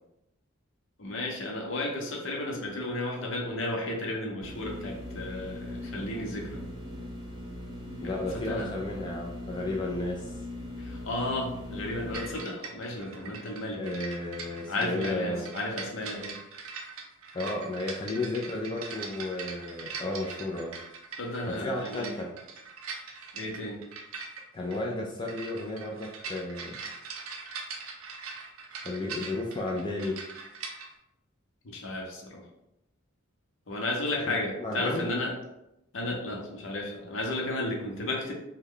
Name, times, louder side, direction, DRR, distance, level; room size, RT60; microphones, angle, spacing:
voice 1, 1.0-6.6 8.0-8.7 10.8-13.8 14.7-16.4 21.2-22.1 23.3-23.8 31.6-32.4 33.7-35.3 35.9-38.3, left 2 dB, 65° left, 0 dB, 0.8 m, -33 dB
sound 1, 4.4-12.4, left 1 dB, 20° right, 0.8 m, -40 dB
voice 2, 8.0-10.3 13.8-15.5 17.3-20.8 21.5-22.3 24.5-26.8 28.8-30.2 34.6-35.1, left 2 dB, 20° left, -2 dB, 0.3 m, -33 dB
sound 2, 12.1-30.9, right 5 dB, 85° right, 0.5 m, -42 dB
3.1 x 2.2 x 3.7 m, 0.87 s
head